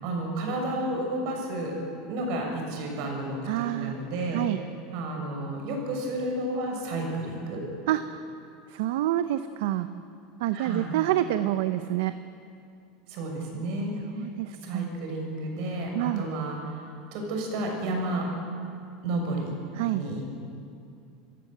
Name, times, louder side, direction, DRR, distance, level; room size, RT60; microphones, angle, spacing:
voice 1, 0.0-1.7 2.1-4.4 4.9-7.6 10.5-10.9 13.1-13.9 14.6-16.6 17.1-18.3 19.0-19.5 19.9-20.2, right 1 dB, 60° right, 1 dB, 6.9 m, -31 dB
voice 2, 3.5-4.0 4.3-4.6 7.9-8.2 8.7-9.9 10.4-12.1 14.1-14.9 15.9-16.2 19.7-20.0, right 14 dB, 75° right, 11 dB, 0.8 m, -27 dB
27.5 x 15.5 x 8.0 m, 2.5 s
supercardioid pair, 145°, 0 cm